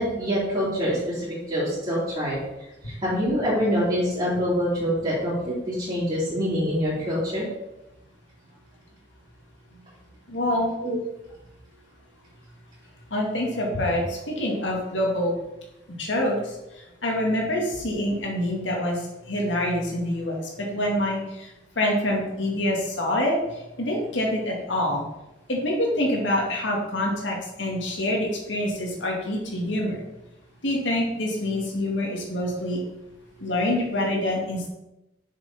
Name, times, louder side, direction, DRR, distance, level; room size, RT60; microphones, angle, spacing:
voice 1, 0.0-2.4 2.8-7.4 10.8-11.0, equal, 30° right, -11 dB, 3.1 m, -25 dB
voice 2, 10.3-10.7 13.1-15.4 16.0-16.4 17.0-19.0 19.3-20.4 20.7-21.5 21.8-25.0 25.5-30.0 30.6-32.8 33.4-34.7, left 1 dB, 90° left, -1 dB, 2.2 m, -26 dB
6.8 x 6.7 x 4.3 m, 0.94 s
head